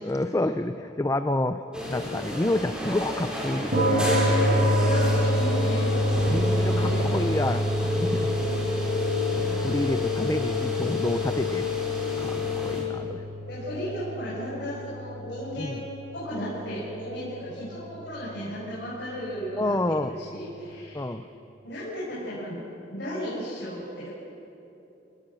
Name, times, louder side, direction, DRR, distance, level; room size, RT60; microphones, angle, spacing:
voice 1, 0.0-1.6 1.9-4.0 6.3-8.4 9.3-11.7 12.2-13.2 15.6-15.8 19.6-20.1 20.9-21.2, left 1 dB, 15° left, 9 dB, 0.5 m, -29 dB
sound 1, 1.7-12.8, left 3 dB, 5° right, 4.5 m, -31 dB
sound 2, 3.7-20.2, equal, 55° right, 4.2 m, -28 dB
voice 2, 4.8-7.1 9.3-10.2 13.5-15.9 16.1-21.1 21.6-22.6 22.9-24.1, equal, 65° left, -8 dB, 6.7 m, -35 dB
29.5 x 18.5 x 6.3 m, 2.9 s
head